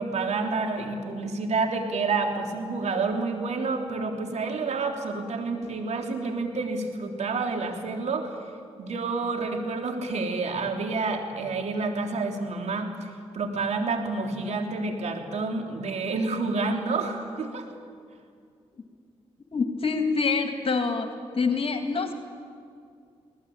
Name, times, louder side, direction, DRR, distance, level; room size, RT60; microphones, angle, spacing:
voice 1, 0.0-8.3 8.8-17.7, right 3 dB, 70° right, 3 dB, 3.7 m, -29 dB
voice 2, 19.5-21.1 21.3-22.1, left 4 dB, 50° left, 5 dB, 2.3 m, -25 dB
24.0 x 19.0 x 8.8 m, 2.3 s
supercardioid pair, 50°, 12 cm